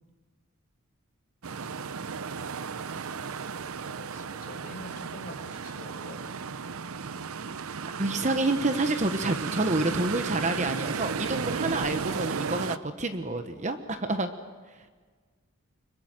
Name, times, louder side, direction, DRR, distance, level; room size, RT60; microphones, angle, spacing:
sound 1, 1.4-12.8, right 5 dB, 70° right, 0.7 m, -34 dB
voice 1, 3.8-6.2, left 1 dB, 40° left, 2 dB, 4.7 m, -46 dB
voice 2, 8.0-14.3, right 2 dB, 30° right, 8 dB, 1.1 m, -28 dB
25.0 x 22.5 x 7.8 m, 1.5 s
head